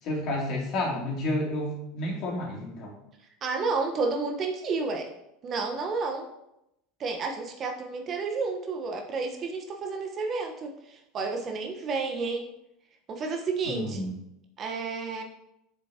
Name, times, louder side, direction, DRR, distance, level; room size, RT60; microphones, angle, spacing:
voice 1, 0.0-2.9 13.6-14.1, left 1 dB, 50° left, -3 dB, 2.8 m, -30 dB
voice 2, 3.4-5.1 5.4-6.3 7.0-12.5 13.1-14.0 14.6-15.2, right 4 dB, 40° right, 3 dB, 1.2 m, -31 dB
8.3 x 6.7 x 3.0 m, 0.82 s
hypercardioid pair, 75°, 0 cm